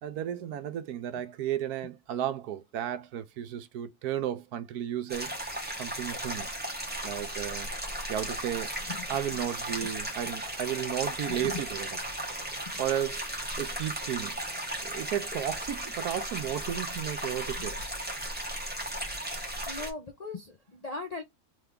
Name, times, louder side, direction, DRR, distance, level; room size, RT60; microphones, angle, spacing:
voice 1, 0.0-5.3 5.8-6.5 7.0-7.7 8.1-8.7 9.1-11.9 12.8-13.3 13.6-14.4 14.8-17.8, right 10 dB, 75° right, 1.1 m, -33 dB
sound 1, 5.1-19.9, right 1 dB, 5° right, 1.1 m, -36 dB
voice 2, 11.3-11.6 12.7-12.8 19.7-21.2, left 4 dB, 50° left, 0.4 m, -39 dB
3.5 x 3.4 x 3.6 m
omnidirectional pair, 1.7 m